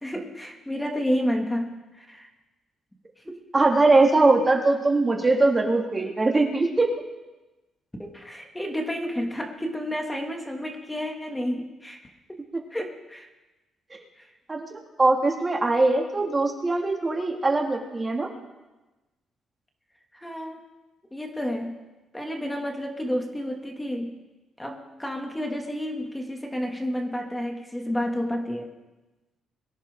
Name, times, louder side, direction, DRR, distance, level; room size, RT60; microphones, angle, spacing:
voice 1, 0.0-2.3 3.3-3.4 8.0-12.0 12.3-12.4 12.7-13.3 14.2-14.3 20.1-20.6 21.1-21.8 22.1-24.1 24.6-28.7, equal, 10° left, 1 dB, 2.3 m, -30 dB
voice 2, 3.5-6.9 14.5-18.3, right 2 dB, 25° right, 1 dB, 2.3 m, -21 dB
23.0 x 10.5 x 3.8 m, 1.1 s
cardioid pair, 90°, 0 cm